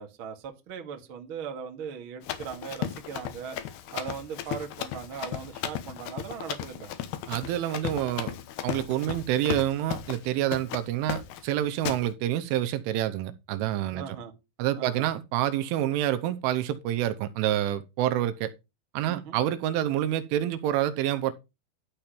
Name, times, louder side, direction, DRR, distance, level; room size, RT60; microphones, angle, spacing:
voice 1, 0.0-3.6 3.9-6.9 13.9-14.3 14.7-15.1 19.1-19.4, right 7 dB, 55° right, 1.4 m, -39 dB
Run, 2.2-10.3 10.5-10.8 11.1-11.5 11.9-12.0, left 11 dB, 75° left, 2.5 m, -36 dB
voice 2, 7.3-8.3 8.6-14.2 14.6-18.5 18.9-21.3, right 12 dB, 85° right, 3.3 m, -27 dB
12.5 x 4.4 x 5.1 m
omnidirectional pair, 5.6 m